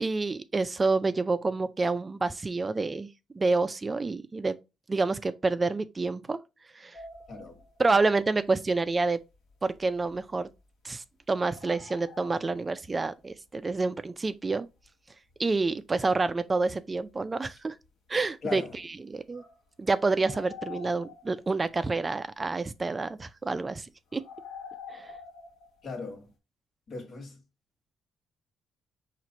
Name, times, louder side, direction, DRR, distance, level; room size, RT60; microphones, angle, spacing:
voice 1, 0.0-3.1 3.4-4.6 4.9-6.4 6.8-7.0 7.8-9.2 9.6-10.5 10.8-14.7 15.4-17.8 18.1-18.6 19.1-19.4 19.8-24.2 24.9-25.1, right 3 dB, 25° right, 0.3 m, -28 dB
sound 1, 6.9-8.2 9.3-10.6 11.4-13.0 13.3-13.4 14.8-14.9 15.3-15.4 15.6-15.7 16.2-16.6 17.1-17.2 17.5-17.9 18.7-18.8 19.3-21.8 24.1-26.1, left 5 dB, 85° left, 1.1 m, -47 dB
voice 2, 18.4-18.8 25.8-26.3 26.9-27.4, left 4 dB, 65° left, 1.4 m, -38 dB
4.5 x 2.5 x 4.0 m
cardioid pair, 90°, 0 cm